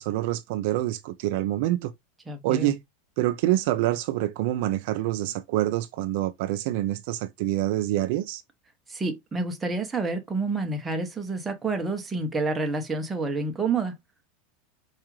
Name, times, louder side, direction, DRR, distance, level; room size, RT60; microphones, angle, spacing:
voice 1, 0.0-1.9 2.4-2.8 3.2-8.4, right 15 dB, 55° right, 0.3 m, -26 dB
voice 2, 2.3-2.7 8.9-13.9, right 3 dB, 10° right, 0.6 m, -28 dB
4.7 x 2.4 x 2.9 m
supercardioid pair, 165°, 0 cm